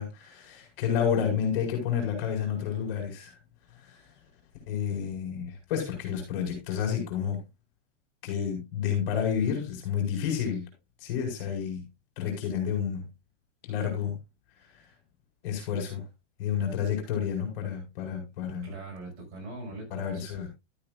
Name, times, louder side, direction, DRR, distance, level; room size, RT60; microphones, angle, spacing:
voice 1, 0.0-3.3 3.8-3.9 4.7-7.4 8.2-10.6 11.0-11.8 12.2-13.0 13.7-14.2 15.4-16.0 16.4-18.7 19.9-20.5, left 8 dB, 50° left, 5.2 m, -30 dB
voice 2, 18.6-20.5, right 2 dB, 35° right, 5.9 m, -42 dB
13.0 x 8.7 x 2.5 m
supercardioid pair, 150°, 36 cm